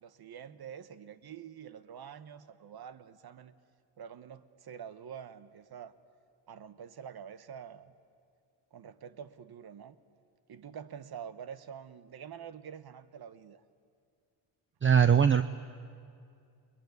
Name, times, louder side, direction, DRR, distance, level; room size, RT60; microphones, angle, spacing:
voice 1, 0.0-3.5 4.0-5.9 6.5-7.9 8.7-10.0 10.5-13.6, right 8 dB, 55° right, 13 dB, 1.2 m, -46 dB
voice 2, 14.8-15.4, right 7 dB, 25° right, 12 dB, 0.6 m, -21 dB
29.5 x 21.5 x 9.5 m, 2.4 s
cardioid pair, 125°, 46 cm